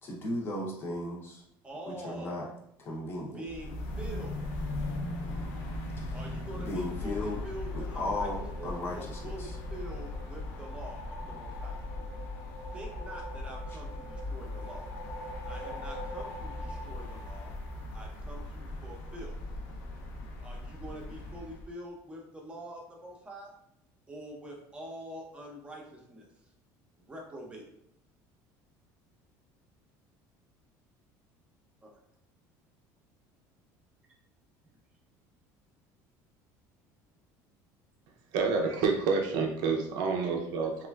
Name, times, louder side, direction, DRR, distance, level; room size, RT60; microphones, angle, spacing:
voice 1, 0.0-1.4 1.9-2.5 2.8-3.4 6.0-6.2 6.6-7.4 7.7-9.5, left 1 dB, 30° left, -2 dB, 0.6 m, -36 dB
voice 2, 1.6-2.4 3.3-4.4 6.1-11.7 12.7-14.8 15.4-17.5 17.9-19.4 20.4-23.5 24.1-26.3 27.0-27.6 31.8-31.9, right 1 dB, 15° right, -1 dB, 0.6 m, -45 dB
sound 1, 3.4-21.7, left 2 dB, 80° left, 0.5 m, -39 dB
sound 2, 6.7-18.2, equal, 60° left, 0.9 m, -47 dB
voice 3, 38.3-40.9, right 4 dB, 70° right, 2 dB, 0.4 m, -28 dB
3.1 x 2.4 x 2.2 m, 0.75 s
cardioid pair, 150°, 8 cm